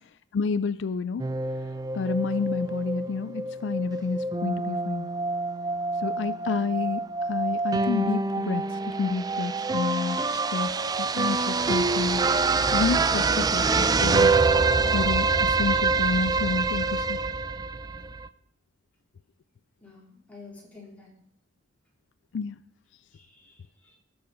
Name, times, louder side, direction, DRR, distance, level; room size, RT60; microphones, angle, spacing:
voice 1, 0.3-1.3 1.9-5.1 6.0-7.0 7.3-12.2 12.7-14.4 14.9-17.2 22.3-22.6, left 5 dB, 65° left, 15 dB, 0.4 m, -29 dB
sound 1, 1.2-18.3, right 4 dB, 20° right, 0.4 m, -26 dB
voice 2, 19.8-21.1 23.2-24.0, left 3 dB, 10° left, -4 dB, 3.9 m, -49 dB
18.0 x 6.9 x 5.1 m, 0.68 s
head